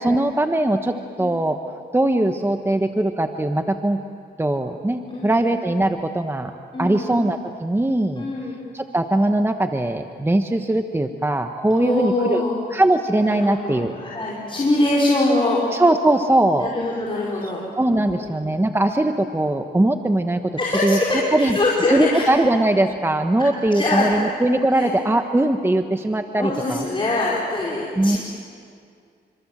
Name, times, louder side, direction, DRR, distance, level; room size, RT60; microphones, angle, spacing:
voice 1, 0.0-1.6 1.9-4.0 4.4-6.5 6.8-8.3 8.7-12.4 12.7-13.9 15.7-16.7 17.8-21.0 21.3-21.6 21.9-26.9 28.0-28.2, right 1 dB, 15° right, 6 dB, 1.3 m, -20 dB
voice 2, 6.7-7.2 8.2-8.6 11.7-12.6 13.3-15.7 16.6-17.7 18.0-18.3 20.6-22.3 23.7-24.1 24.7-24.9 26.4-28.2, left 2 dB, 30° left, -5 dB, 5.4 m, -23 dB
29.5 x 26.0 x 7.6 m, 2.2 s
cardioid pair, 80°, 18 cm